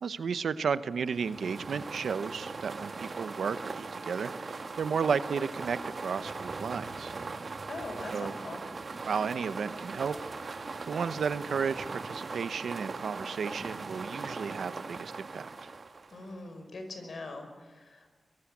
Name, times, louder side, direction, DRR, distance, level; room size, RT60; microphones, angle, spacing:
voice 1, 0.0-7.1 8.1-8.3 9.0-10.1 10.4-15.5, right 6 dB, 90° right, 13 dB, 0.8 m, -33 dB
sound 1, 1.0-16.5, right 3 dB, 65° right, 1.5 m, -40 dB
voice 2, 7.7-8.6 16.1-18.1, left 2 dB, 75° left, 6 dB, 5.3 m, -42 dB
22.5 x 18.0 x 8.6 m, 1.3 s
cardioid pair, 45°, 0 cm